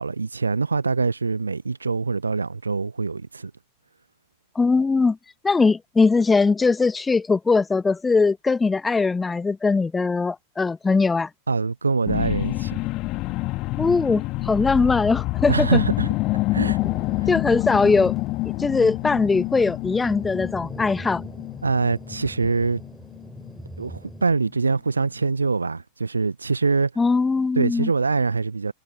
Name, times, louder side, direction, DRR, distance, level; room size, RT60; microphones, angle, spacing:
voice 1, 0.0-3.5 11.5-12.8 15.5-16.1 16.5-16.8 17.2-17.3 21.6-22.8 23.8-26.9 27.6-28.7, right 4 dB, 80° right, 1.1 m, -24 dB
voice 2, 4.5-5.2 5.4-11.3 13.8-15.8 17.3-18.1 18.6-21.2 27.0-27.9, left 4 dB, 10° left, 1.5 m, -20 dB
sound 1, 12.1-24.7 25.2-25.3, left 21 dB, 40° left, 2.8 m, -28 dB
Thunder, 16.8-24.3, right 2 dB, 5° right, 6.4 m, -42 dB
figure-of-eight pair, 90°, 0 cm